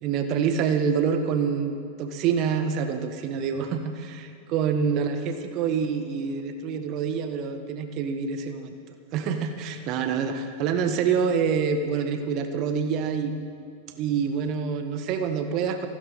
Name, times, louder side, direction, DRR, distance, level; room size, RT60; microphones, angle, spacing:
voice 1, 0.0-8.7 9.1-13.3 13.9-15.9, right 6 dB, 40° right, 7 dB, 1.5 m, -26 dB
26.5 x 13.0 x 4.2 m, 2.2 s
figure-of-eight pair, 90°, 0 cm